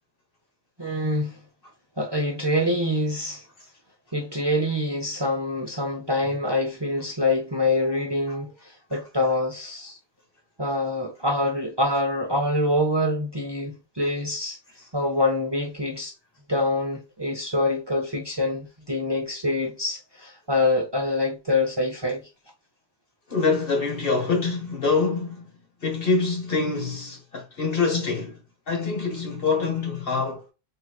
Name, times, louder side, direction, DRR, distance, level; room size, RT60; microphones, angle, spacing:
voice 1, 0.8-1.4 2.0-3.4 4.1-10.0 10.6-14.6 14.9-16.1 16.5-22.3, left 1 dB, 30° right, 0.6 m, -25 dB
voice 2, 23.3-25.5 25.8-28.3 28.7-30.4, left 4 dB, 60° left, 1.4 m, -25 dB
3.7 x 3.0 x 2.3 m
omnidirectional pair, 1.1 m